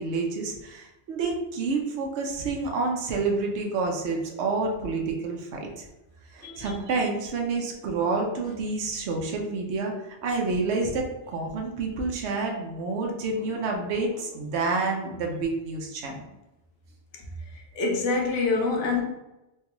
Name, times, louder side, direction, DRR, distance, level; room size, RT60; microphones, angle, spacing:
voice 1, 0.0-5.8 6.3-9.9 10.2-16.3, right 3 dB, 70° right, 1 dB, 0.9 m, -28 dB
voice 2, 17.5-19.0, left 3 dB, 80° left, 0 dB, 1.0 m, -26 dB
3.4 x 2.3 x 2.9 m, 0.95 s
omnidirectional pair, 1.2 m